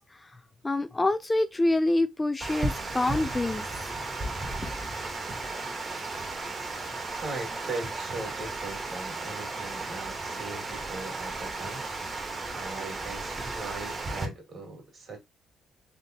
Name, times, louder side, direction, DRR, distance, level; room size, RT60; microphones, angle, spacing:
voice 1, 0.6-3.9 4.6-4.7, left 2 dB, 20° left, 0.3 m, -27 dB
Water, 2.4-14.3, right 2 dB, 35° right, 1.1 m, -34 dB
voice 2, 7.2-11.8 12.5-15.2, right 3 dB, 50° right, 2.0 m, -39 dB
3.8 x 3.3 x 2.7 m
cardioid pair, 90°, 0 cm